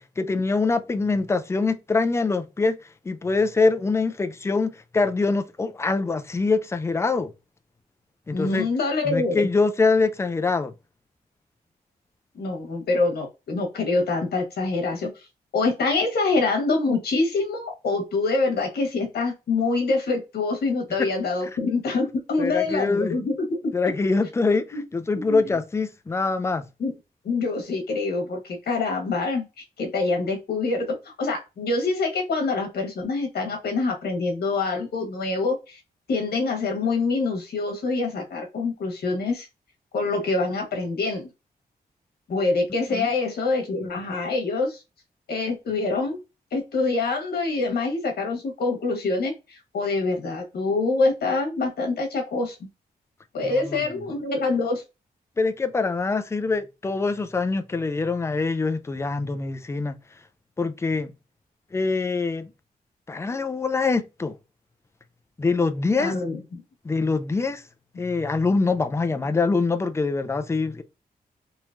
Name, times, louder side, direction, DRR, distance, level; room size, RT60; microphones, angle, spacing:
voice 1, 0.2-2.7 3.1-7.3 8.3-8.7 9.1-10.7 22.4-23.2 23.7-26.7 42.9-43.1 53.4-53.8 55.4-60.0 60.6-61.1 61.7-62.5 63.1-64.3 65.4-66.1 66.8-67.6 68.0-70.8, left 3 dB, 15° left, 0.4 m, -24 dB
voice 2, 8.3-9.5 12.3-15.3 15.5-23.7 24.7-24.8 25.1-25.4 26.8-26.9 27.2-30.9 31.2-35.8 36.1-39.5 39.9-41.3 42.3-44.8 45.3-46.2 46.5-52.6 53.3-54.8 66.0-66.6, left 3 dB, 85° left, 1.4 m, -25 dB
3.8 x 2.9 x 2.6 m
wide cardioid pair, 140°, 16 cm